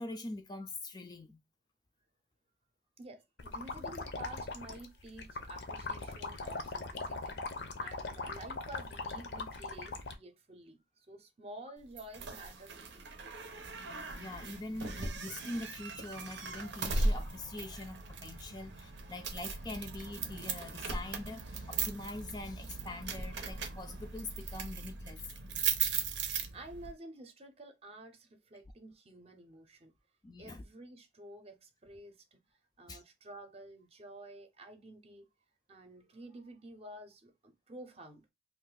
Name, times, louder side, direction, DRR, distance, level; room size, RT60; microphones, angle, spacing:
voice 1, 0.0-1.4 14.1-25.2 30.2-30.6 32.9-33.0, left 2 dB, 25° left, 0.3 m, -43 dB
voice 2, 3.0-7.4 7.8-13.3 26.5-29.9 30.4-35.3 35.7-38.3, right 1 dB, 35° right, 0.6 m, -51 dB
sound 1, 3.4-10.1, left 3 dB, 70° left, 0.6 m, -40 dB
sound 2, 12.0-26.9, right 4 dB, 90° right, 0.7 m, -38 dB
2.6 x 2.4 x 3.7 m
head